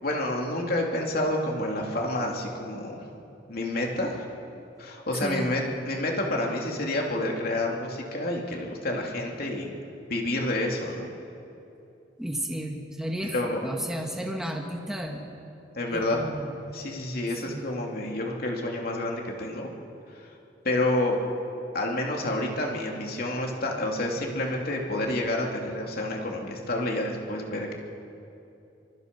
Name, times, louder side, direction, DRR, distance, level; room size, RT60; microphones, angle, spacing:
voice 1, 0.0-3.1 3.5-4.3 4.8-9.7 10.1-11.1 13.3-13.7 15.8-16.3 16.7-19.7 20.2-20.3 20.6-21.2 21.7-27.7, left 1 dB, 55° left, 0 dB, 3.1 m, -29 dB
voice 2, 5.2-5.6 12.2-15.3 15.9-16.5 17.5-17.7, equal, 5° right, 0 dB, 1.8 m, -33 dB
24.5 x 24.0 x 5.5 m, 2.8 s
head